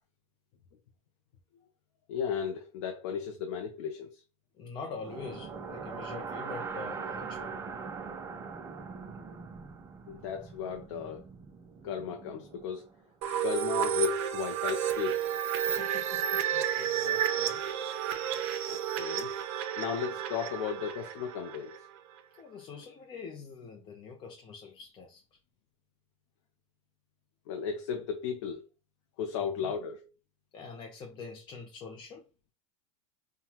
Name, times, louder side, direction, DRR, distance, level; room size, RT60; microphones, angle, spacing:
voice 1, 2.1-4.2 10.1-11.2 11.8-12.9 13.4-15.2 18.7-19.3 19.8-21.8 27.5-28.6 29.2-30.1, left 7 dB, 70° left, 0.7 m, -35 dB
voice 2, 4.6-7.6 15.6-17.6 22.4-25.2 29.4-29.7 30.5-32.2, left 5 dB, 30° left, 0.6 m, -45 dB
sound 1, 5.0-13.0, right 5 dB, 15° right, 0.5 m, -42 dB
sound 2, 13.2-21.8, right 10 dB, 60° right, 0.8 m, -31 dB
5.6 x 2.3 x 2.9 m
supercardioid pair, 145°, 16 cm